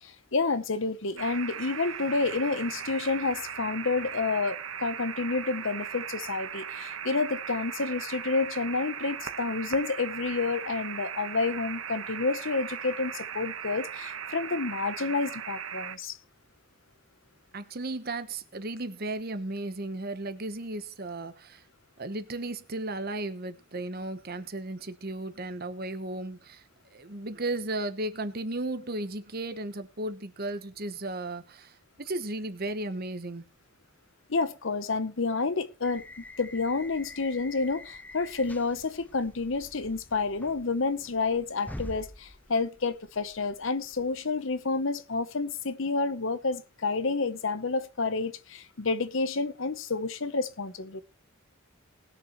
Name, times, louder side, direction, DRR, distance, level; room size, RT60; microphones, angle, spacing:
voice 1, 0.0-16.2 34.3-36.0 36.4-51.0, left 3 dB, 60° left, 0.8 m, -29 dB
sound 1, 1.2-16.0, right 8 dB, 70° right, 1.2 m, -38 dB
voice 2, 17.5-21.6 22.0-26.6 26.9-33.4, right 2 dB, 45° right, 1.0 m, -35 dB
sound 2, 35.8-44.2, left 1 dB, 5° left, 0.6 m, -47 dB
20.0 x 6.7 x 3.0 m
head